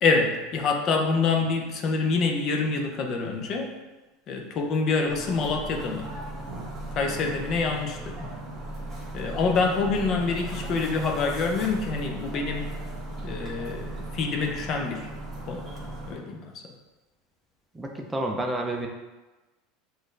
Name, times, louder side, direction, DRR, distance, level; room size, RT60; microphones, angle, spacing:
voice 1, 0.0-3.7 4.3-6.1 6.9-8.3 9.1-12.7 13.2-15.1 15.5-15.6 16.1-16.4, left 4 dB, 45° left, 3 dB, 0.7 m, -26 dB
sound 1, 5.1-16.1, right 1 dB, 25° right, 1.5 m, -37 dB
voice 2, 17.7-18.9, right 1 dB, 10° right, 1 dB, 0.5 m, -29 dB
6.1 x 2.6 x 3.2 m, 1.1 s
supercardioid pair, 110°, 0 cm